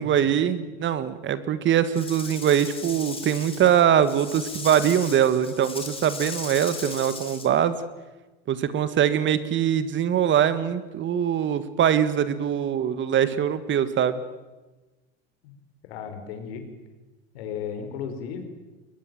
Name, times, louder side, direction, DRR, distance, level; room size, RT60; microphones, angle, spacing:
voice 1, 0.0-7.8 8.5-14.2, right 9 dB, 35° right, 13 dB, 1.7 m, -22 dB
Rattle / Rattle (instrument), 1.9-7.5, left 4 dB, 15° left, 4.4 m, -37 dB
voice 2, 15.9-16.6 17.3-18.5, left 7 dB, 75° left, 7 dB, 4.5 m, -34 dB
22.0 x 21.5 x 7.8 m, 1.2 s
supercardioid pair, 105°, 32 cm